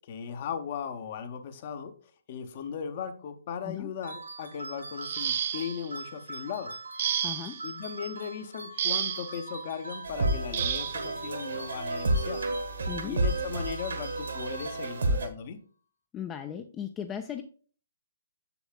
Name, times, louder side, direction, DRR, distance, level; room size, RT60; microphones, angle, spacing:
voice 1, 0.1-1.9 2.3-6.8 7.6-12.5 13.0-15.6, left 7 dB, 40° left, 9 dB, 0.8 m, -37 dB
sound 1, 4.0-15.2, right 2 dB, 85° right, 2.5 m, -43 dB
sound 2, 5.0-5.9 7.0-7.6 8.8-9.4 10.5-11.0 12.2-12.3 12.9-13.1, right 9 dB, 45° right, 0.4 m, -31 dB
voice 2, 7.2-7.6 12.9-13.2 16.1-17.4, left 9 dB, 20° left, 7 dB, 0.4 m, -37 dB
sound 3, 10.0-15.3, right 2 dB, 65° right, 1.4 m, -30 dB
7.1 x 6.9 x 2.3 m, 0.42 s
figure-of-eight pair, 125°, 0 cm